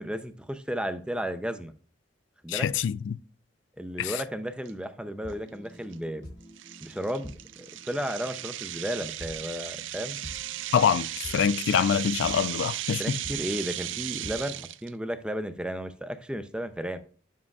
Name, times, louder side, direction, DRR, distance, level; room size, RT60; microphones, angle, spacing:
voice 1, 0.0-1.7 2.4-2.7 3.8-6.2 6.8-10.2 13.0-17.0, equal, 5° right, 0.5 m, -34 dB
voice 2, 2.5-3.2 4.0-4.2 10.7-13.2, left 7 dB, 75° left, 0.3 m, -25 dB
sound 1, 4.6-4.7 5.3-5.5 5.9-6.0 6.6-14.9, right 13 dB, 80° right, 0.4 m, -36 dB
sound 2, 4.7-14.6, equal, 55° left, 1.3 m, -48 dB
10.5 x 7.5 x 2.4 m
head